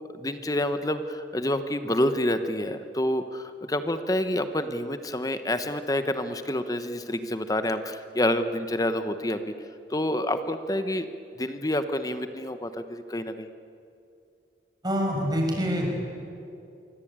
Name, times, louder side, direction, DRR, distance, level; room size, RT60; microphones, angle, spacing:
voice 1, 0.1-9.5 9.9-11.1 11.4-13.5, left 1 dB, 20° left, 9 dB, 1.0 m, -28 dB
voice 2, 14.8-15.9, equal, 25° right, 1 dB, 6.0 m, -25 dB
26.5 x 24.0 x 8.9 m, 2.6 s
head